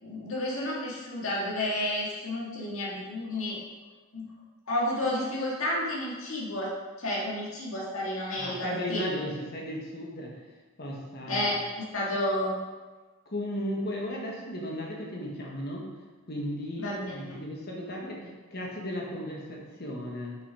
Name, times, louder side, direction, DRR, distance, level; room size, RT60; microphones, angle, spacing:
voice 1, 0.0-3.6 4.1-4.3 4.7-9.0 11.3-12.6 16.8-17.3, left 1 dB, 65° left, -5 dB, 1.8 m, -31 dB
voice 2, 8.4-10.3 10.8-11.5 13.2-15.9 16.3-20.4, equal, 45° left, -2 dB, 1.4 m, -35 dB
6.1 x 5.8 x 4.9 m, 1.3 s
head